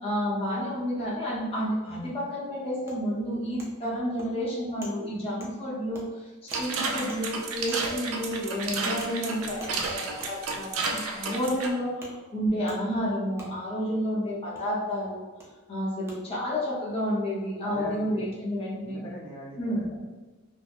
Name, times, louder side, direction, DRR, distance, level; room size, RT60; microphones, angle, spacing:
voice 1, 0.0-15.2 15.7-19.0 19.6-19.9, equal, 25° left, -7 dB, 0.7 m, -30 dB
Wood, 2.9-3.0 3.6-3.7 4.2-4.3 4.8-4.9 5.4-5.5 5.9-6.1 6.5-6.7 7.1-7.2 7.7-7.8 8.3-8.4 9.0-9.1 9.6-9.7 10.2-10.3 10.8-10.9 11.4-11.6 12.0-12.1 12.7-12.8 13.4-13.5 14.5-14.7 15.4-15.5 16.1-16.2, right 1 dB, 10° right, 0.5 m, -44 dB
sound 1, 6.5-11.7, right 3 dB, 70° right, 0.4 m, -31 dB
voice 2, 17.6-18.3 18.8-20.0, left 1 dB, 75° left, -4 dB, 0.8 m, -40 dB
3.4 x 2.1 x 2.4 m, 1.3 s
head